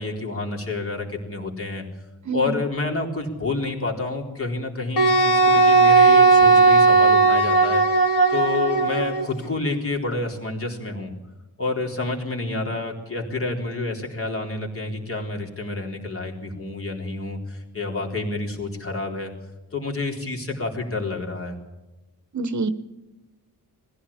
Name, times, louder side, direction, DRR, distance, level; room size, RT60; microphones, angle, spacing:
voice 1, 0.0-1.8 2.3-7.8 8.3-11.1 11.6-19.3 19.7-21.6, left 3 dB, 35° left, 0 dB, 4.0 m, -29 dB
voice 2, 2.3-2.6 22.3-22.7, right 3 dB, 50° right, 12 dB, 1.1 m, -26 dB
Wind instrument woodwind instrument, 5.0-9.2, right 3 dB, 55° left, 2.8 m, -16 dB
21.5 x 15.5 x 8.6 m, 1.1 s
wide cardioid pair, 135°, 38 cm